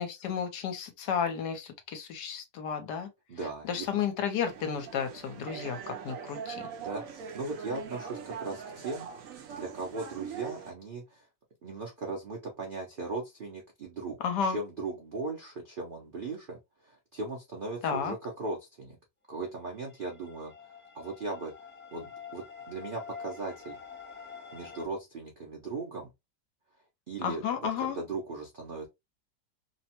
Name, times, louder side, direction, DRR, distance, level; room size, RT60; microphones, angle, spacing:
voice 1, 0.0-3.1 3.6-6.7 14.2-14.6 17.8-18.1 27.2-28.0, left 7 dB, 70° left, 1.2 m, -32 dB
voice 2, 3.3-3.9 6.8-9.1 9.5-11.2 11.6-19.0 19.3-20.5 20.9-23.8 24.5-26.1 27.1-27.4 27.8-28.9, right 3 dB, 85° right, 0.4 m, -38 dB
sound 1, 4.4-10.7, right 7 dB, 65° right, 0.8 m, -42 dB
sound 2, 19.8-24.9, left 6 dB, 15° left, 0.4 m, -47 dB
3.0 x 2.1 x 2.8 m
omnidirectional pair, 2.0 m